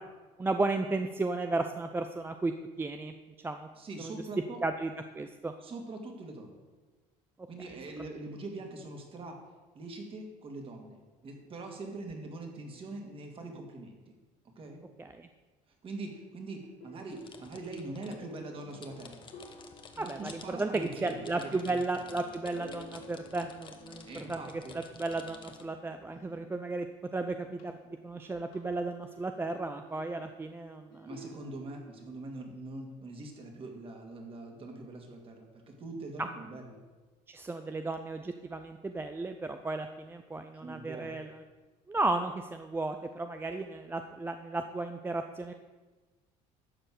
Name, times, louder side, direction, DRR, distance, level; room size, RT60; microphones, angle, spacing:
voice 1, 0.4-3.1 3.4-3.7 4.0-4.1 4.6-5.5 15.0-15.3 20.0-26.9 27.1-31.1 36.2-36.3 37.3-41.4 41.9-45.5, right 2 dB, 15° right, 7 dB, 0.5 m, -34 dB
voice 2, 3.8-4.6 5.6-6.6 7.5-9.4 9.7-11.0 11.2-14.1 14.6-14.8 15.8-19.2 19.9-21.8 24.0-24.8 31.0-36.8 40.5-41.2, right 2 dB, 40° right, 2 dB, 2.3 m, -43 dB
sound 1, 16.8-26.8 27.1-32.2, left 1 dB, 70° left, 2.5 m, -53 dB
sound 2, 17.1-25.6, left 5 dB, 35° left, 1.2 m, -52 dB
12.0 x 4.4 x 7.7 m, 1.3 s
supercardioid pair, 100°, 15 cm